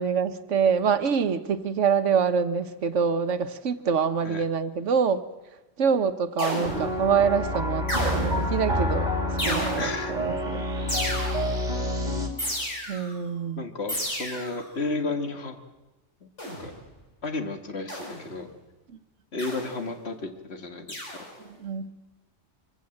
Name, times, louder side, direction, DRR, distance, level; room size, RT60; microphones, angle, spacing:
voice 1, 0.0-5.2 5.8-9.1 9.4-10.7 12.9-13.7 21.4-21.9, right 6 dB, 75° right, 11 dB, 1.3 m, -25 dB
sound 1, 6.4-7.0 7.9-8.5 9.4-10.1 10.9-11.6 12.4-13.1 13.9-14.6 16.4-16.8 17.9-18.3 19.4-19.8 20.9-21.4, equal, 75° left, 6.6 m, -32 dB
sound 2, 6.6-12.3, equal, 35° right, 2.6 m, -28 dB
voice 2, 9.8-10.2 13.6-15.6 16.2-16.3 16.6-16.7 17.2-18.5 19.3-21.3, left 3 dB, 60° left, 6 dB, 2.0 m, -33 dB
24.0 x 16.0 x 7.8 m, 1.1 s
omnidirectional pair, 1.3 m